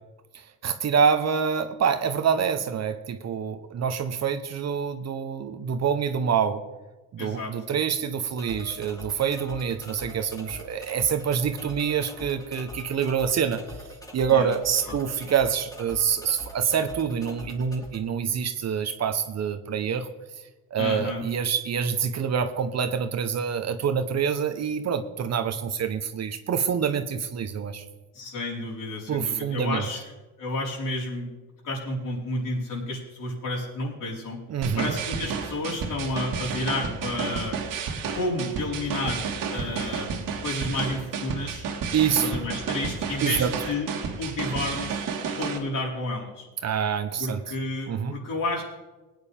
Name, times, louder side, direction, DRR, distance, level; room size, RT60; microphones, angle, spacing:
voice 1, 0.6-6.6 7.1-13.6 14.1-20.1 20.7-27.8 29.1-29.8 34.5-35.0 41.9-42.3 43.2-43.5 46.6-47.4 47.9-48.2, right 7 dB, 45° right, 8 dB, 1.1 m, -26 dB
voice 2, 7.2-7.5 14.3-14.5 14.9-15.0 20.8-21.2 28.1-30.0 30.4-31.3 31.6-34.4 34.8-37.6 38.1-39.3 39.5-40.1 40.4-41.7 42.2-43.9 44.2-45.0 45.4-46.4 47.2-48.6, left 2 dB, 55° left, -3 dB, 4.8 m, -31 dB
sound 1, 8.4-18.0, left 2 dB, 10° left, 2.6 m, -43 dB
sound 2, 34.6-45.6, right 5 dB, 60° right, 2.0 m, -31 dB
19.5 x 9.5 x 3.6 m, 1.2 s
cardioid pair, 95°, 37 cm